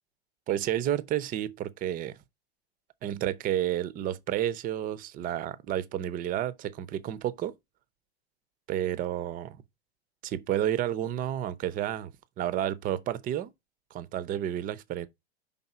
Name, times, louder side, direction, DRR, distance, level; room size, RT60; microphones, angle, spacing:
voice 1, 0.5-2.2 3.0-7.5 8.7-9.6 10.2-12.1 12.4-13.5 13.9-15.1, right 11 dB, 25° right, 0.6 m, -31 dB
5.5 x 3.6 x 5.8 m
hypercardioid pair, 115°, 33 cm